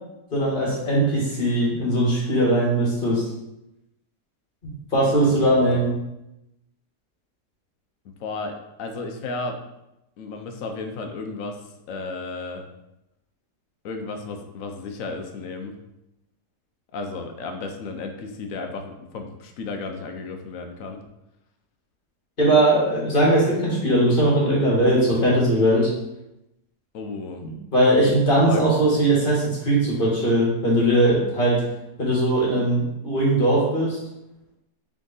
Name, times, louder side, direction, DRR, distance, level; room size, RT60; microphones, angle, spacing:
voice 1, 0.3-3.2 4.6-5.9 22.4-25.9 27.4-31.6 32.0-34.0, right 1 dB, 35° left, -6 dB, 1.4 m, -20 dB
voice 2, 5.2-5.8 8.0-9.6 10.2-11.6 11.9-12.6 13.8-15.7 16.9-21.0 26.9-27.4 28.4-28.6, left 3 dB, 65° left, 4 dB, 0.9 m, -33 dB
3.7 x 3.6 x 3.9 m, 0.89 s
omnidirectional pair, 1.7 m